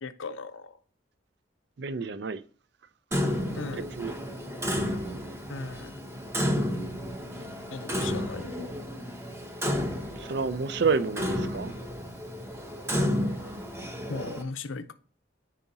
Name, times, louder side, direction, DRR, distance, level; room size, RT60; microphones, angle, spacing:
voice 1, 0.0-0.8 3.6-3.9 5.5-6.0 7.7-8.6 13.3-13.5 14.1-14.9, left 4 dB, 90° left, 0.6 m, -38 dB
voice 2, 1.8-2.4 3.7-4.1 10.2-11.7, right 5 dB, 60° right, 0.4 m, -29 dB
Clock, 3.1-14.4, equal, 15° right, 0.8 m, -32 dB
9.2 x 4.9 x 2.7 m
head